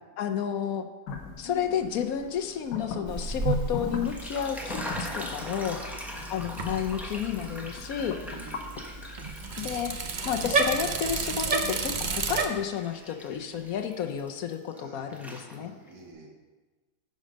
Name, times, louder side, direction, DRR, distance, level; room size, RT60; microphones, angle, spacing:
voice 1, 0.2-0.9 1.4-5.8 6.3-8.2 9.6-15.7, left 8 dB, 70° left, 6 dB, 1.1 m, -31 dB
sound 1, 1.1-13.9, left 4 dB, 85° left, 1.5 m, -42 dB
Bicycle, 3.1-12.5, right 4 dB, 50° right, 0.5 m, -32 dB
sound 2, 3.9-10.3 10.7-14.8 15.1-15.9, equal, ahead, 0.6 m, -42 dB
voice 2, 5.6-6.3 8.2-8.7 14.7-16.3, right 3 dB, 80° right, -1 dB, 2.3 m, -50 dB
10.5 x 5.4 x 5.1 m, 1.3 s
omnidirectional pair, 1.7 m